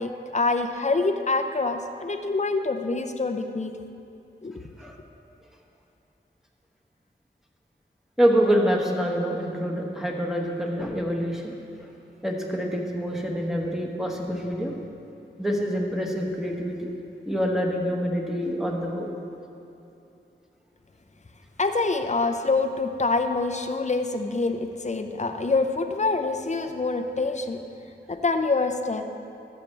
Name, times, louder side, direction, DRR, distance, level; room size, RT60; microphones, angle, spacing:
voice 1, 0.0-3.7 4.4-4.6 21.6-27.6 28.1-29.1, left 3 dB, 35° left, 7 dB, 0.6 m, -26 dB
voice 2, 8.2-11.5 12.2-14.8 15.4-16.9 17.2-19.1, equal, ahead, -1 dB, 1.3 m, -26 dB
14.0 x 7.4 x 3.3 m, 2.8 s
wide cardioid pair, 45°, 20 cm